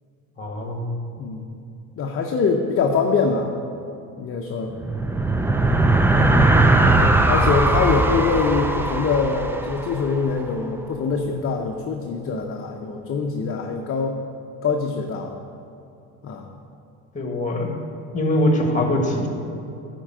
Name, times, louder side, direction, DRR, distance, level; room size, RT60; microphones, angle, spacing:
voice 1, 0.4-0.9 6.1-6.3 6.7-7.0 17.1-17.7 18.1-19.3, left 1 dB, 20° left, 2 dB, 1.6 m, -23 dB
voice 2, 2.0-3.5 4.2-4.7 6.8-14.2 14.6-15.3 16.2-16.5, left 4 dB, 35° left, 2 dB, 0.7 m, -24 dB
sound 1, 4.7-10.4, right 2 dB, 5° right, 0.4 m, -19 dB
10.5 x 4.5 x 7.6 m, 2.6 s
cardioid pair, 110°, 37 cm